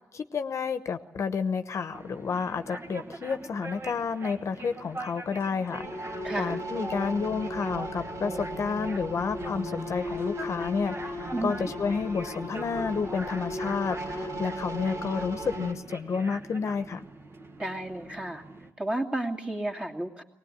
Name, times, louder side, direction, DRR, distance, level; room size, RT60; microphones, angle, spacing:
voice 1, 0.1-17.0, left 5 dB, 55° left, 9 dB, 1.0 m, -30 dB
sound 1, 1.9-18.7, right 2 dB, 45° right, 1.7 m, -43 dB
sound 2, 5.7-15.7, equal, 65° right, 4.3 m, -36 dB
voice 2, 6.2-6.6 11.3-11.7 17.6-18.4 18.8-20.2, right 1 dB, 20° right, 0 dB, 2.5 m, -32 dB
21.5 x 19.0 x 9.7 m, 1.1 s
cardioid pair, 100°, 6 cm